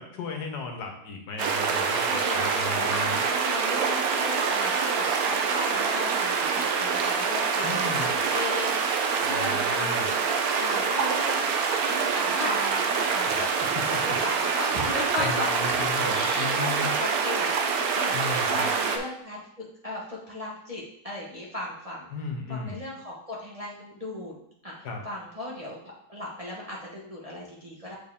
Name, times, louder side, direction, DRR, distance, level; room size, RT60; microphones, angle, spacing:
voice 1, 0.0-3.2 7.6-8.1 9.2-10.1 13.2-14.0 15.2-16.9 18.1-18.7 22.1-22.8 24.8-25.0, left 4 dB, 65° left, 3 dB, 1.4 m, -35 dB
sound 1, 1.4-19.0, right 5 dB, 65° right, 1.1 m, -26 dB
voice 2, 2.1-10.2 10.6-13.6 13.9-15.6 16.1-22.1 22.5-25.8 26.1-27.9, left 1 dB, 25° right, -4 dB, 1.0 m, -36 dB
7.3 x 4.4 x 3.6 m, 0.72 s
omnidirectional pair, 1.9 m